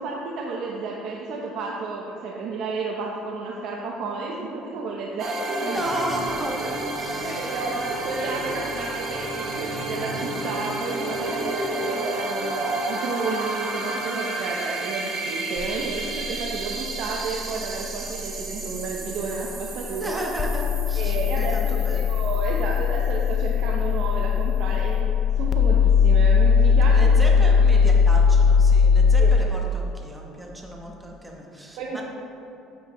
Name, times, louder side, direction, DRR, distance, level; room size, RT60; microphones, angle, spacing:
voice 1, 0.0-5.7 6.7-6.8 7.2-20.2 21.0-27.9 29.2-29.3 31.8-32.0, right 3 dB, 65° right, -2 dB, 0.8 m, -32 dB
sound 1, 5.2-23.7, right 2 dB, 40° right, 1.3 m, -31 dB
voice 2, 5.7-7.6 19.9-22.1 26.9-32.0, right 1 dB, 10° right, -1 dB, 1.2 m, -34 dB
sound 2, 15.6-29.4, left 6 dB, 35° left, 0.4 m, -21 dB
9.4 x 7.7 x 3.1 m, 2.9 s
cardioid pair, 130°, 0 cm